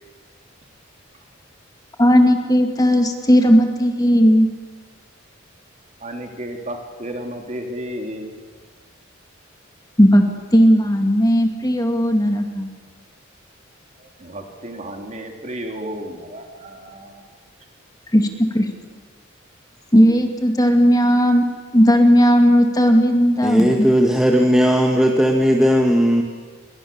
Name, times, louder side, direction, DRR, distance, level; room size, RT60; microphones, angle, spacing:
voice 1, 2.0-4.5 10.0-10.2 10.5-12.7 18.1-18.3 18.5-18.7 19.9-21.4 21.7-23.9, equal, 20° left, 4 dB, 2.3 m, -15 dB
voice 2, 6.0-8.3 14.0-17.2, right 1 dB, 35° right, 3 dB, 3.6 m, -33 dB
voice 3, 23.4-26.2, equal, 5° right, 1 dB, 1.6 m, -16 dB
29.0 x 23.5 x 7.2 m, 1.5 s
head